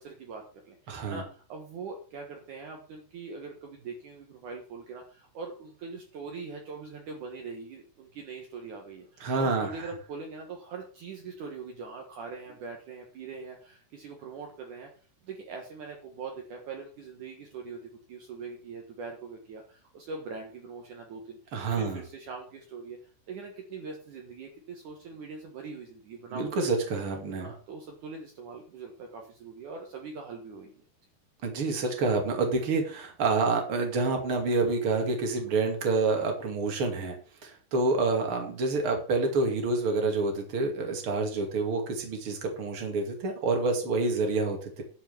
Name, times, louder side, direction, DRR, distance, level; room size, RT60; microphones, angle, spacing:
voice 1, 0.0-14.9 15.2-17.8 18.1-23.0 23.3-26.7 27.4-30.8, right 4 dB, 70° right, 2 dB, 1.8 m, -42 dB
voice 2, 0.9-1.2 9.2-9.9 21.5-22.0 26.3-27.5 31.4-37.2 37.4-44.8, right 3 dB, 40° right, 3 dB, 2.1 m, -28 dB
11.5 x 6.0 x 7.0 m, 0.41 s
omnidirectional pair, 5.9 m